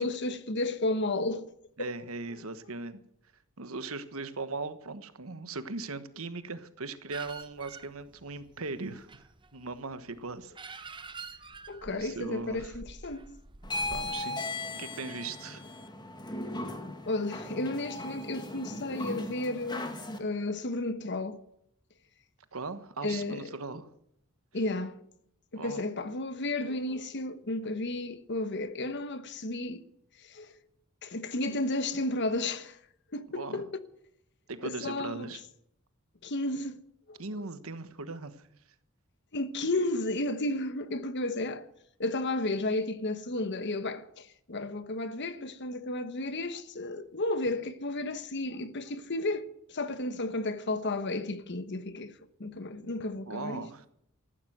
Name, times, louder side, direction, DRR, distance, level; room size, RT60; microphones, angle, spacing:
voice 1, 0.0-1.5 1.8-1.9 11.7-13.3 17.0-21.4 23.0-23.6 24.5-25.0 25.5-29.8 30.2-30.5 31.0-32.8 33.1-33.7 34.6-35.3 36.2-36.8 37.1-37.2 39.3-41.7 42.0-52.1 52.4-53.6, left 2 dB, 55° left, 1.1 m, -33 dB
voice 2, 1.8-3.0 3.6-9.1 9.5-11.0 11.8-12.7 13.8-14.4 14.7-15.7 22.5-23.9 25.5-25.9 33.3-33.6 34.5-35.4 37.2-38.5 53.3-53.9, right 3 dB, 70° right, 1.3 m, -39 dB
sound 1, 7.1-14.1, right 4 dB, 20° right, 0.8 m, -47 dB
sound 2, 13.6-20.2, left 1 dB, 20° left, 1.9 m, -37 dB
14.5 x 12.0 x 7.8 m
head